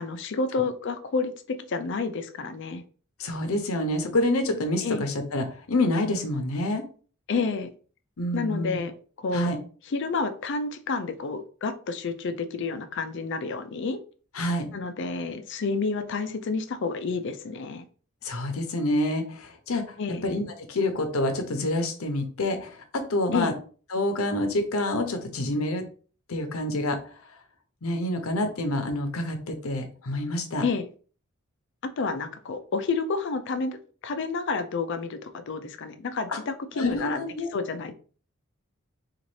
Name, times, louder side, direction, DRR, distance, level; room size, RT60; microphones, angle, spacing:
voice 1, 0.0-2.8 4.8-5.0 7.3-7.7 8.3-8.9 9.2-9.5 9.9-14.0 14.7-17.8 20.0-20.2 23.3-23.5 30.6-30.9 32.0-33.8 34.0-37.2 37.5-37.9, left 4 dB, 60° left, 9 dB, 0.4 m, -29 dB
voice 2, 3.2-6.8 8.2-8.9 9.3-9.6 14.3-14.7 18.2-19.8 20.2-23.5 23.9-25.8 26.3-27.2 27.8-30.7 36.3-36.4 36.7-37.5, left 1 dB, 85° left, 6 dB, 0.7 m, -27 dB
3.9 x 2.5 x 3.1 m, 0.40 s
head